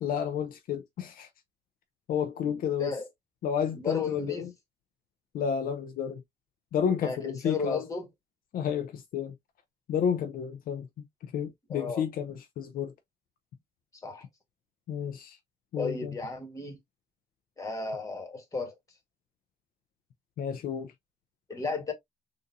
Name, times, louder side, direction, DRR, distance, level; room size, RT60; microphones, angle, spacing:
voice 1, 0.0-1.3 2.1-2.9 3.4-4.5 5.3-6.2 6.7-7.8 8.5-9.3 9.9-10.9 11.2-12.9 14.9-15.4 15.7-16.2 20.4-20.9, left 8 dB, 60° left, 0.5 m, -31 dB
voice 2, 3.7-4.5 7.0-8.1 11.7-12.0 14.0-14.2 15.8-16.8 17.6-18.7 21.5-21.9, left 4 dB, 20° left, 1.5 m, -34 dB
3.9 x 2.5 x 2.6 m
cardioid pair, 110°, 17 cm